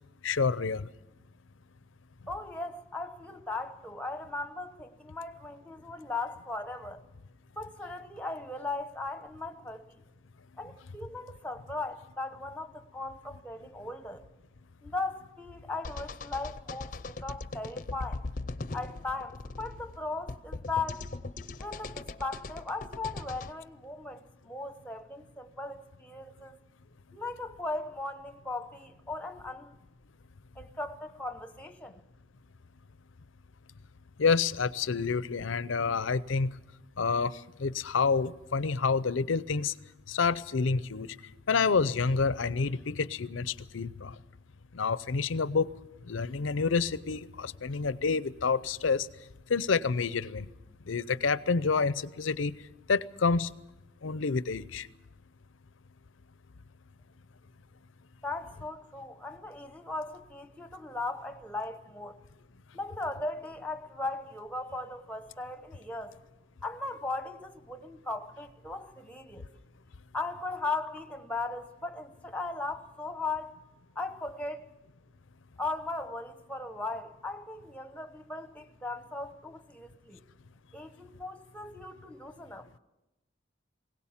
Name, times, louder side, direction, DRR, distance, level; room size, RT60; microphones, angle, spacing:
voice 1, 0.2-0.9 34.2-36.5 37.0-39.7 40.1-41.2 41.5-44.2 44.7-45.7 46.0-49.1 49.5-50.5 50.9-52.6 52.9-53.5 54.0-54.9, left 5 dB, 90° left, 0.6 m, -28 dB
voice 2, 2.3-7.0 7.6-9.8 10.6-14.2 14.8-18.2 18.7-21.1 21.6-26.6 27.1-29.7 30.6-32.0 58.2-62.2 62.7-66.2 66.6-69.5 70.1-73.6 73.9-74.7 75.6-80.2 80.7-82.7, left 3 dB, 5° left, 0.9 m, -38 dB
sound 1, 15.8-23.5, left 3 dB, 45° left, 0.6 m, -40 dB
21.0 x 18.0 x 7.3 m
head